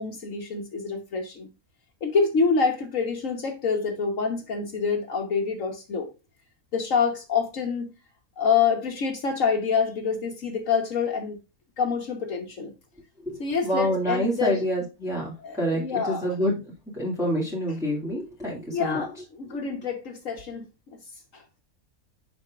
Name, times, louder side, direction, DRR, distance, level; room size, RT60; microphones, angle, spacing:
voice 1, 0.0-1.5 2.0-6.1 6.7-7.9 8.4-11.4 11.8-12.7 13.4-14.6 15.4-16.3 18.7-21.0 21.3-21.4, left 5 dB, 65° left, 1.4 m, -26 dB
voice 2, 13.3-16.6 16.9-19.0, equal, ahead, 2.2 m, -27 dB
7.5 x 5.8 x 2.4 m
omnidirectional pair, 1.5 m